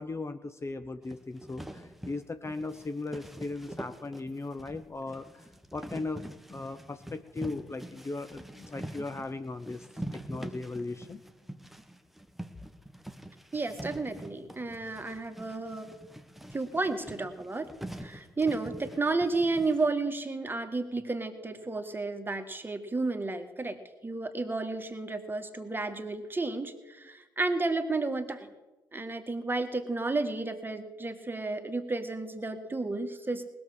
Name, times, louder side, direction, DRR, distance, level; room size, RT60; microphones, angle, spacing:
voice 1, 0.0-6.2 6.5-9.9 10.3-11.2, left 3 dB, 25° left, 10 dB, 0.8 m, -37 dB
sound 1, 1.0-19.9, right 1 dB, ahead, 1.3 m, -44 dB
voice 2, 13.5-15.9 16.5-17.7 18.0-23.8 24.0-28.5 28.9-33.4, right 3 dB, 20° right, 7 dB, 1.7 m, -32 dB
19.5 x 7.2 x 6.4 m, 1.1 s
hypercardioid pair, 45°, 11 cm